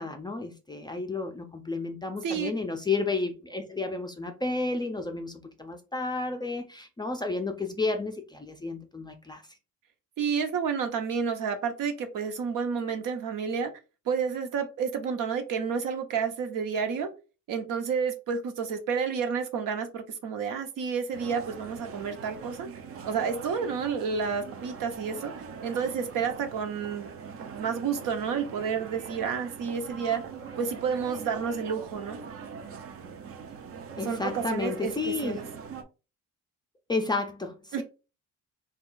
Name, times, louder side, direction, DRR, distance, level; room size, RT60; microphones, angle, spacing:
voice 1, 0.0-9.4 34.0-35.4 36.9-37.8, left 3 dB, 15° left, 0.4 m, -32 dB
voice 2, 10.2-13.7 14.1-17.1 17.5-22.7 23.1-25.3 25.6-27.1 27.5-30.2 30.6-32.2 34.0-35.4 37.7-37.8, right 6 dB, 70° right, 0.9 m, -30 dB
sound 1, 21.1-35.8, right 6 dB, 45° right, 0.5 m, -42 dB
3.4 x 2.3 x 3.7 m
cardioid pair, 130°, 33 cm